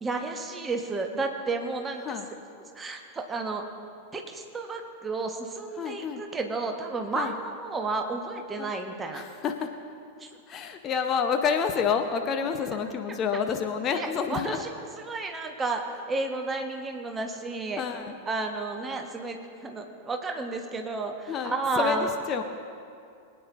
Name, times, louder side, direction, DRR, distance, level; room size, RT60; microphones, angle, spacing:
voice 1, 0.0-2.0 2.7-3.6 4.1-9.2 10.2-10.3 13.9-14.7 15.0-17.8 18.3-22.1, right 3 dB, 15° right, 4 dB, 1.2 m, -32 dB
voice 2, 5.8-6.2 7.1-7.4 8.6-8.7 9.1-9.7 10.5-14.6 17.8-18.1 21.3-22.4, left 6 dB, 30° left, 6 dB, 0.8 m, -28 dB
23.0 x 9.3 x 2.6 m, 2.5 s
figure-of-eight pair, 90°, 0 cm